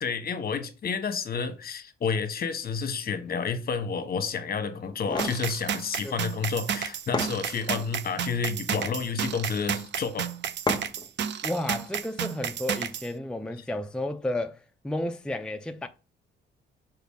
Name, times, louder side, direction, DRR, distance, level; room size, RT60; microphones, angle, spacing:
voice 1, 0.0-10.3, left 5 dB, 50° left, 1.1 m, -30 dB
sound 1, 4.8-5.4 6.7-6.8 7.1-7.9 8.6-9.0 10.7-11.1, left 3 dB, 20° left, 0.9 m, -32 dB
sound 2, 5.2-13.1, right 8 dB, 65° right, 0.6 m, -32 dB
voice 2, 11.4-15.9, left 1 dB, 5° left, 0.5 m, -32 dB
5.8 x 4.6 x 3.6 m
cardioid pair, 90°, 20 cm